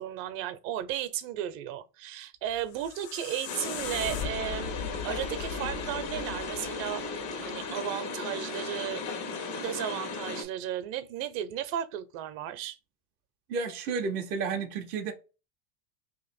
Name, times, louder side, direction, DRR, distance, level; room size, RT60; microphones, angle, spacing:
voice 1, 0.0-7.0 7.4-9.0 9.5-12.8, right 11 dB, 55° right, 0.7 m, -35 dB
sound 1, 2.5-7.6, left 8 dB, 55° left, 0.6 m, -40 dB
sound 2, 3.5-10.4, left 4 dB, 90° left, 1.3 m, -36 dB
voice 2, 13.5-15.1, right 5 dB, 25° right, 0.3 m, -31 dB
2.9 x 2.5 x 4.1 m
supercardioid pair, 135°, 49 cm